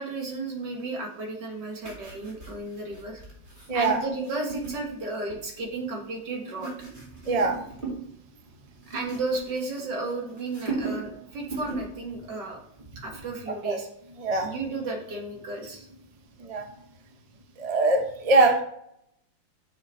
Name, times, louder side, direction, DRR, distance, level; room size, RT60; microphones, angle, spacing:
voice 1, 0.0-3.2 3.7-6.7 8.9-12.6 13.0-13.9 14.4-15.9, right 3 dB, 60° right, 0 dB, 2.3 m, -33 dB
sound 1, 1.8-5.7 6.3-8.1 8.4-10.1 10.4-11.2 11.5-12.0 12.3-12.5, right 4 dB, 25° right, 2.5 m, -38 dB
voice 2, 3.7-4.0 7.2-7.6 13.6-13.8 14.2-14.5 16.5-16.6 17.6-18.6, right 2 dB, 40° right, 4 dB, 0.5 m, -22 dB
7.3 x 5.9 x 4.2 m, 0.71 s
omnidirectional pair, 2.2 m